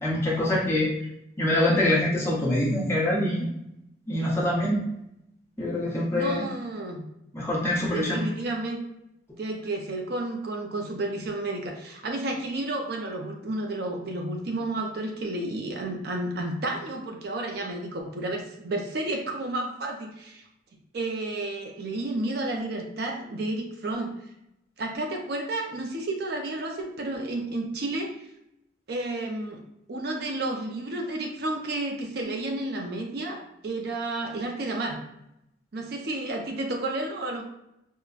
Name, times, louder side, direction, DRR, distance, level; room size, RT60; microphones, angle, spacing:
voice 1, 0.0-0.9 1.4-3.5 4.1-4.8 5.6-6.4 7.3-8.3, left 1 dB, 15° left, -6 dB, 0.9 m, -24 dB
voice 2, 6.1-7.0 7.6-8.8 9.4-20.4 20.9-24.1 24.8-28.1 28.9-29.6 29.9-35.0 35.7-37.4, right 2 dB, 60° right, 2 dB, 0.5 m, -31 dB
4.6 x 2.1 x 2.4 m, 0.82 s
head